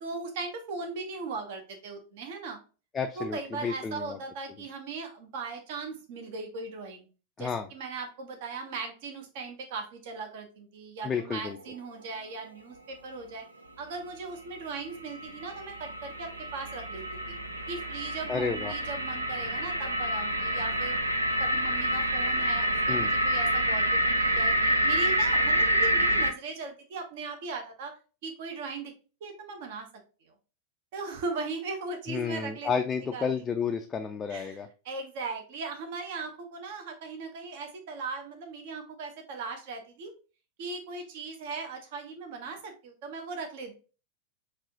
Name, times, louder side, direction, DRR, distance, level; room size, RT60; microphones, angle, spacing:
voice 1, 0.0-2.6 3.2-7.1 7.4-13.4 13.8-17.4 17.7-21.0 21.4-27.9 28.2-28.9 29.2-29.9 30.2-30.3 30.9-32.7 33.0-33.3 34.3-34.6 34.8-40.1 40.6-43.7, right 4 dB, 50° right, 5 dB, 0.8 m, -38 dB
voice 2, 2.9-4.2 7.4-7.7 11.0-11.6 18.3-18.7 22.9-23.1 32.1-34.7, left 6 dB, 20° left, 5 dB, 0.3 m, -31 dB
sound 1, 14.7-26.3, equal, 85° right, 0.4 m, -27 dB
5.3 x 2.6 x 2.7 m, 0.34 s
figure-of-eight pair, 90°, 0 cm